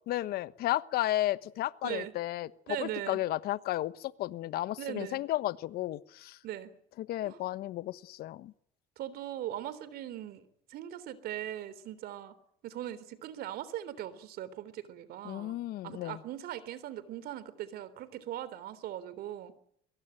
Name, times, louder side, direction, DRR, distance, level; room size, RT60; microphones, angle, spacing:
voice 1, 0.1-2.5 2.8-6.4 7.0-8.5 15.2-16.2, left 15 dB, 70° left, 16 dB, 1.2 m, -33 dB
voice 2, 2.7-3.2 4.8-5.2 6.4-6.7 7.2-7.4 9.0-12.4 12.6-15.6 15.8-19.5, right 12 dB, 70° right, 16 dB, 3.6 m, -40 dB
23.0 x 22.5 x 9.1 m, 0.67 s
supercardioid pair, 85°, 17 cm